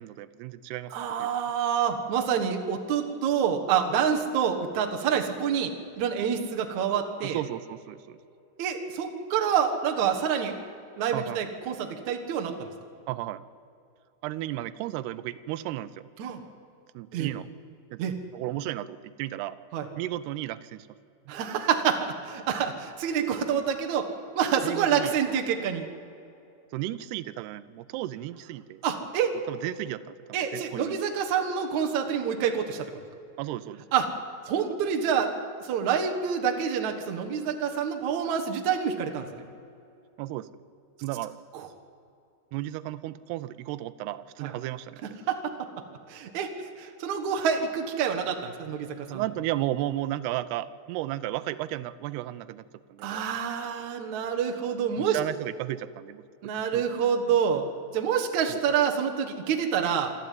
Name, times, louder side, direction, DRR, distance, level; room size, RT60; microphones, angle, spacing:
voice 1, 0.0-0.9 1.2-1.3 7.2-8.2 11.1-11.4 13.1-13.4 14.2-16.1 17.0-17.5 17.9-19.6 20.0-20.9 24.6-25.4 26.7-28.8 29.5-30.9 33.4-33.8 40.2-40.5 41.0-41.4 42.5-45.2 49.1-53.2 55.0-56.2 56.7-56.8 58.5-58.6, right 14 dB, 90° right, 13 dB, 2.7 m, -34 dB
voice 2, 0.9-7.4 8.6-10.6 11.0-12.7 16.2-16.4 17.1-17.3 18.0-18.1 19.7-19.9 21.3-24.1 24.4-25.9 28.8-29.3 30.3-32.9 33.9-34.1 34.5-35.3 35.6-39.4 41.5-41.6 44.4-44.5 45.3-45.7 46.1-46.5 46.8-49.2 53.0-55.2 56.4-57.7 57.9-60.1, right 7 dB, 55° right, 3 dB, 2.4 m, -27 dB
28.0 x 12.0 x 9.3 m, 2.7 s
omnidirectional pair, 4.6 m